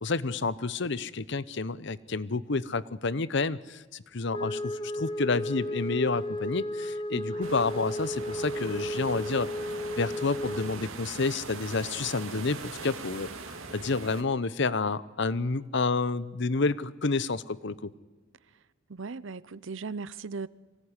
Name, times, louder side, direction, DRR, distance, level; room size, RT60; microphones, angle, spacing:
voice 1, 0.0-9.5 10.0-13.3 13.7-17.9, left 3 dB, 60° left, 0.8 m, -29 dB
Wind instrument woodwind instrument, 4.3-10.7, left 1 dB, 20° left, 1.1 m, -34 dB
voice 2, 7.1-7.5 18.9-20.5, right 4 dB, 65° right, 0.7 m, -38 dB
sound 1, 7.4-14.2, right 4 dB, 90° right, 2.4 m, -42 dB
sound 2, 8.1-14.0, equal, 25° right, 2.8 m, -54 dB
24.5 x 17.5 x 9.8 m
head